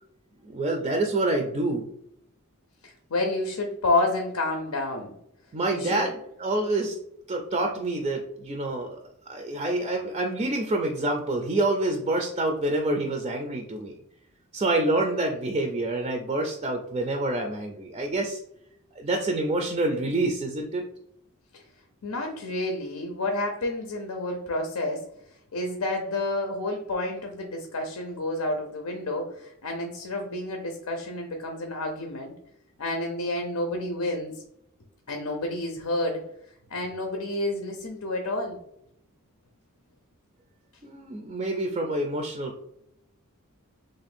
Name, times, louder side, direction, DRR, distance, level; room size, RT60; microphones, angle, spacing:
voice 1, 0.4-1.9 5.5-7.0 7.3-9.0 9.3-14.0 14.5-18.4 19.0-20.8 40.8-42.6, right 2 dB, 25° right, 3 dB, 0.4 m, -27 dB
voice 2, 2.8-5.1 5.7-6.0 21.5-21.6 22.0-25.1 25.5-32.3 32.8-34.4 35.1-36.2 36.7-38.6, left 2 dB, 85° left, 3 dB, 0.6 m, -29 dB
3.1 x 2.5 x 4.2 m, 0.76 s
head